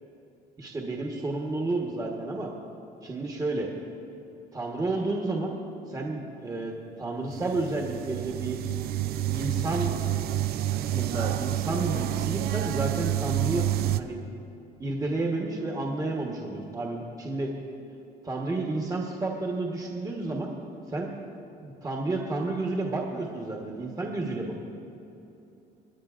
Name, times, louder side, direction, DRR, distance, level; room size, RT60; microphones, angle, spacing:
voice 1, 0.6-2.5 3.0-3.7 4.5-5.6 5.9-8.6 9.3-10.0 10.7-13.6 14.0-14.2 14.8-17.5 18.2-20.5 20.9-21.2 21.6-24.6, right 2 dB, 20° right, -1 dB, 1.2 m, -31 dB
sound 1, 7.3-14.0, right 12 dB, 65° right, 0.4 m, -29 dB
24.5 x 9.5 x 2.5 m, 2.8 s
cardioid pair, 110°, 17 cm